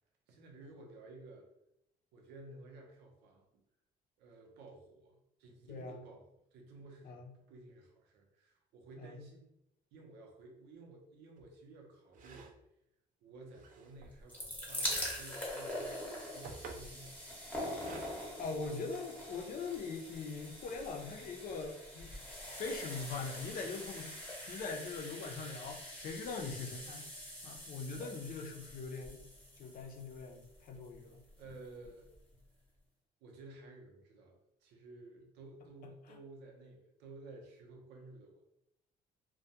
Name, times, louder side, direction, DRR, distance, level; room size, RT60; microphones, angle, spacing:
voice 1, 0.3-1.5 2.1-3.4 4.2-6.2 6.5-9.5 9.9-12.5 13.2-16.0 16.3-17.8 18.3-19.0 31.4-32.1 33.2-38.4, right 2 dB, 90° right, 1 dB, 0.7 m, -54 dB
sound 1, 11.4-11.5 12.1-12.6 13.5-14.2 14.8-15.2 16.1-16.9 17.7-18.2, right 4 dB, 55° right, 0.4 m, -50 dB
sound 2, 14.0-31.1 31.8-31.9 32.1-32.2, left 1 dB, 10° left, 0.8 m, -44 dB
voice 2, 18.4-27.0 27.4-29.3 29.6-31.2, left 4 dB, 55° left, 2 dB, 0.5 m, -42 dB
2.3 x 2.2 x 2.8 m, 0.79 s
cardioid pair, 110°, 17 cm